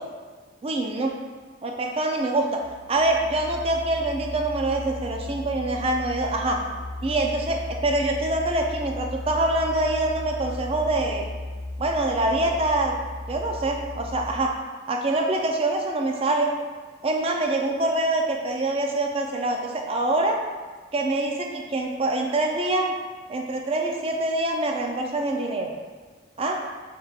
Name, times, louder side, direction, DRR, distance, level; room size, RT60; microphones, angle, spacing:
voice 1, 0.6-1.1 1.6-2.6 2.9-6.6 7.0-11.2 11.8-13.0 13.3-14.5 14.9-16.5 17.0-20.4 20.9-22.9 23.3-25.7 26.4-26.6, right 2 dB, 30° right, 2 dB, 0.3 m, -25 dB
Musical instrument, 2.6-14.6, left 2 dB, 50° left, 0.4 m, -36 dB
5.0 x 3.3 x 2.3 m, 1.4 s
head